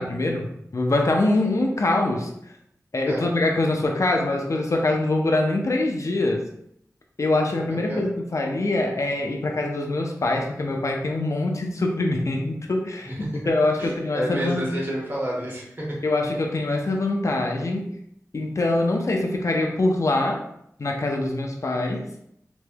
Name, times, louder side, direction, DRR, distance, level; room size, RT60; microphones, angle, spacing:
voice 1, 0.0-2.3 2.9-6.5 7.2-13.1 13.4-14.7 16.0-17.9 18.3-20.4 20.8-22.0, left 2 dB, 60° left, 1 dB, 0.5 m, -24 dB
voice 2, 7.7-8.0 13.1-13.2 13.8-16.0, equal, 35° right, -4 dB, 1.2 m, -30 dB
3.3 x 3.0 x 2.2 m, 0.74 s
wide cardioid pair, 50°, 6 cm